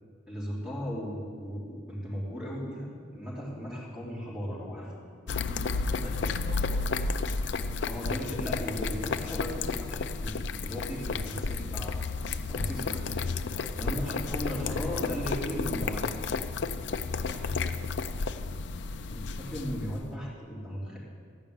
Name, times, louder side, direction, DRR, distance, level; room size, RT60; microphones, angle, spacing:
voice 1, 0.3-2.9 3.1-4.9 7.8-12.0 12.5-13.2 13.8-16.0 19.1-21.0, equal, 5° right, -8 dB, 3.3 m, -36 dB
sound 1, 5.3-20.1, left 4 dB, 60° left, 0.4 m, -32 dB
voice 2, 5.9-7.0 13.5-15.0 17.2-17.7, equal, 55° right, -5 dB, 3.1 m, -45 dB
14.0 x 5.7 x 8.9 m, 2.1 s
head